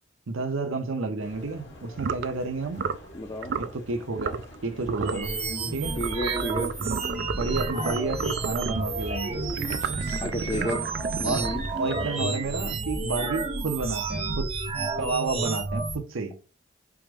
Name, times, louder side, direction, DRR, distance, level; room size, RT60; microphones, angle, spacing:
voice 1, 0.3-2.9 3.5-5.3 5.7-6.0 6.8-7.0 7.3-9.4 10.5-10.7 11.2-14.5 14.8-16.4, right 3 dB, 85° right, 0.7 m, -31 dB
sound 1, 1.2-12.8, left 1 dB, 60° left, 1.1 m, -47 dB
sound 2, 2.0-2.3 2.8-3.1 3.4-3.7 4.2-4.6 4.8-5.3 6.0-8.8 9.5-12.3, right 6 dB, 55° right, 0.3 m, -33 dB
voice 2, 3.1-3.5 6.0-6.7 10.2-10.8 11.2-11.6, equal, 20° left, 0.6 m, -31 dB
sound 3, 5.0-16.0, right 3 dB, 30° right, 0.7 m, -31 dB
4.9 x 2.0 x 4.7 m
head